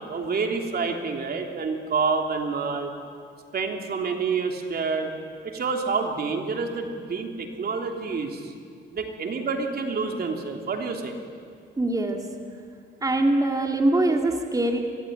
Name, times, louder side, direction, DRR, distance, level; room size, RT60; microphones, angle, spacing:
voice 1, 0.1-2.9 3.5-5.1 5.4-8.5 8.9-11.1, right 4 dB, 50° right, 3 dB, 3.1 m, -28 dB
voice 2, 11.8-12.2 13.0-14.8, right 2 dB, 20° right, 3 dB, 2.7 m, -23 dB
25.5 x 22.0 x 9.3 m, 2.3 s
cardioid pair, 90°, 20 cm